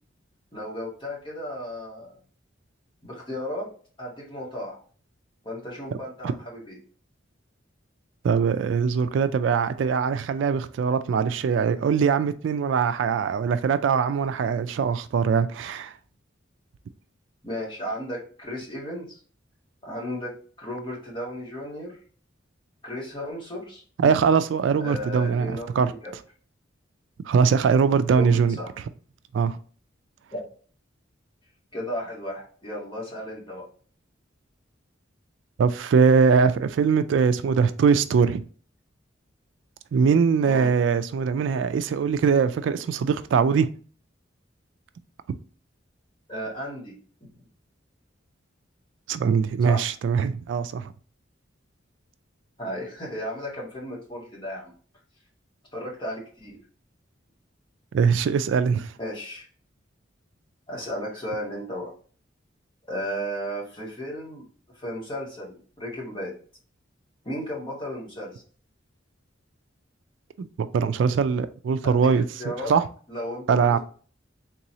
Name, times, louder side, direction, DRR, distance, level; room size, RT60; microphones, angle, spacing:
voice 1, 0.5-2.2 3.0-3.7 4.0-4.8 5.4-6.8 17.4-19.2 19.8-22.0 22.8-23.8 24.8-26.1 28.1-28.7 30.3-30.4 31.7-33.7 40.4-40.7 46.3-47.0 49.6-49.8 52.6-54.7 55.7-56.6 59.0-59.5 60.7-61.9 62.9-64.4 64.7-66.3 67.2-68.4 71.8-72.7 73.1-73.7, equal, 25° left, 1.7 m, -34 dB
voice 2, 8.2-15.9 24.0-25.9 27.2-28.6 29.3-29.6 35.6-38.4 39.9-43.7 49.1-50.9 57.9-58.9 70.4-72.2 72.7-72.8 73.5-73.8, right 6 dB, 70° right, 0.3 m, -22 dB
3.7 x 3.0 x 2.7 m
head